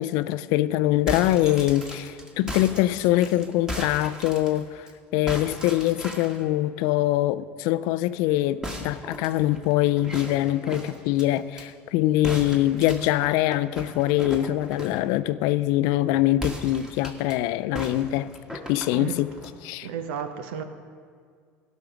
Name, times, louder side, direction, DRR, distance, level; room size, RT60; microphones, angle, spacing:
voice 1, 0.0-4.9 5.1-19.3 19.6-19.9, left 14 dB, 70° left, 0.4 m, -23 dB
sound 1, 0.9-4.9 5.3-6.4 8.6-11.7 12.2-15.1 16.3-17.4 17.7-19.6, equal, 10° right, 1.6 m, -37 dB
voice 2, 19.8-20.6, right 8 dB, 80° right, 0.8 m, -32 dB
16.0 x 5.9 x 5.1 m
supercardioid pair, 85°, 6 cm